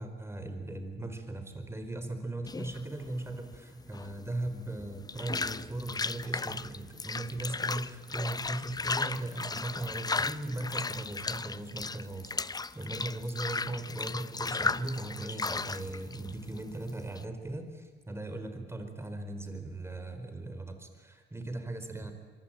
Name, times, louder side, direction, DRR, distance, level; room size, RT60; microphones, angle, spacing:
voice 1, 0.0-12.5 12.7-22.1, right 2 dB, 15° right, 7 dB, 4.5 m, -38 dB
sound 1, 2.5-17.2, left 4 dB, 20° left, 0.7 m, -36 dB
24.0 x 24.0 x 9.0 m, 1.5 s
cardioid pair, 90°, 20 cm